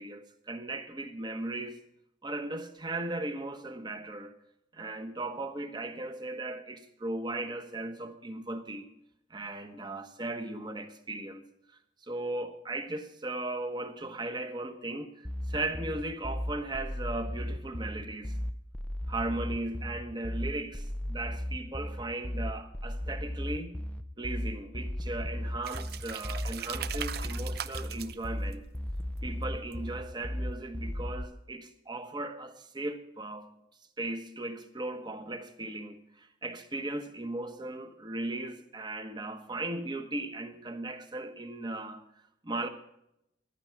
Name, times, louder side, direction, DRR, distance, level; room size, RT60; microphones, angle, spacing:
voice 1, 0.0-1.8 2.2-4.4 4.7-8.9 9.3-11.4 12.0-18.4 19.1-23.8 24.2-28.6 29.2-33.5 34.0-42.0 42.4-42.7, right 2 dB, 25° right, 1.1 m, -37 dB
sound 1, 15.2-31.2, left 1 dB, 5° left, 0.5 m, -35 dB
sound 2, 25.6-30.3, right 9 dB, 55° right, 0.6 m, -41 dB
15.0 x 11.5 x 4.7 m
head